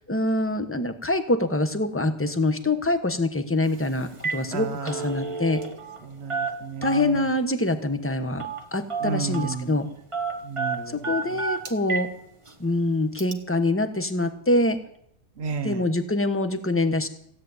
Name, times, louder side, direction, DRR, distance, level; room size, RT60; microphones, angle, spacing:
voice 1, 0.0-5.6 6.8-9.9 10.9-12.1 12.6-14.8 15.6-17.1, left 2 dB, 10° left, 9 dB, 1.0 m, -25 dB
Telephone, 3.6-3.8 4.1-4.4 4.7-6.0 6.3-7.2 8.4-8.6 8.9-9.6 10.1-12.1 12.5-12.6 13.2-13.3, right 4 dB, 20° right, 1.3 m, -30 dB
voice 2, 4.5-4.9 6.2-7.0 9.0-9.7 10.5-10.9 15.4-15.8, right 5 dB, 45° right, 11 dB, 1.0 m, -32 dB
16.5 x 8.5 x 9.5 m, 0.71 s
omnidirectional pair, 1.7 m